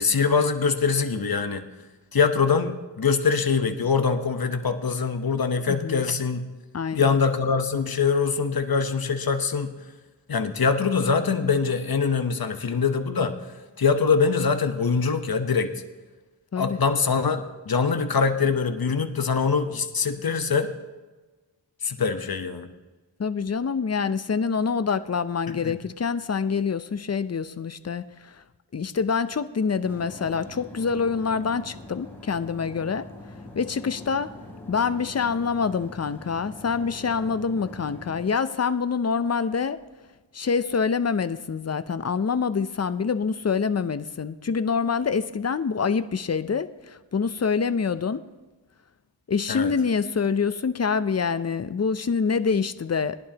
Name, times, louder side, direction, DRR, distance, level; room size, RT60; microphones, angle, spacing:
voice 1, 0.0-1.7 2.1-6.4 6.9-9.7 10.3-13.4 13.8-15.7 16.6-20.7 21.8-22.7 25.5-25.8 49.5-49.7, left 5 dB, 50° left, 7 dB, 1.0 m, -23 dB
voice 2, 5.7-6.0 6.7-7.2 16.5-16.8 23.2-28.4 28.7-33.1 33.6-34.3 34.7-39.8 40.3-48.2 49.3-53.2, left 5 dB, 35° left, 13 dB, 0.5 m, -26 dB
sound 1, 29.8-38.2, left 2 dB, 5° left, 3.7 m, -43 dB
19.0 x 11.0 x 2.9 m, 1.2 s
wide cardioid pair, 45°, 46 cm